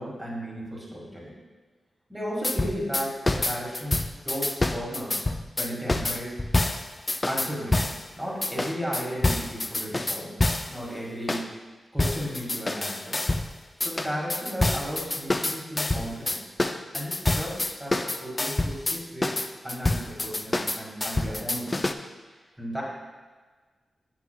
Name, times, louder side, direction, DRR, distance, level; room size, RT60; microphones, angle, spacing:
voice 1, 0.0-1.4 2.1-5.2 5.6-6.4 7.3-7.9 8.1-10.4 10.7-11.5 11.9-13.3 13.8-16.4 16.9-19.4 19.6-21.8 22.6-22.8, equal, 10° right, -4 dB, 1.8 m, -34 dB
sound 1, 2.4-8.0 8.4-10.8 11.3-11.5 12.0-13.5 13.8-21.9, left 2 dB, 25° left, 0.3 m, -27 dB
7.5 x 6.0 x 2.2 m, 1.4 s
cardioid pair, 80°, 0 cm